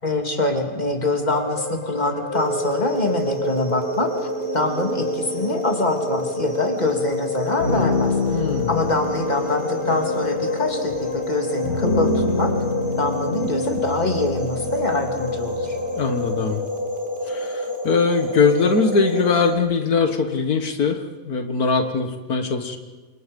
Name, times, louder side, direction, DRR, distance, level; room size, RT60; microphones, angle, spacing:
voice 1, 0.0-4.3 4.5-12.5 13.0-15.8, left 2 dB, 30° left, 3 dB, 3.0 m, -24 dB
sound 1, 1.3-16.6, left 3 dB, 75° left, 2.7 m, -28 dB
sound 2, 2.3-19.5, left 1 dB, 35° right, 2.5 m, -29 dB
voice 2, 8.3-8.7 16.0-16.6 17.3-22.8, left 5 dB, 90° left, 6 dB, 2.1 m, -21 dB
28.5 x 26.5 x 5.4 m, 1.3 s
omnidirectional pair, 1.5 m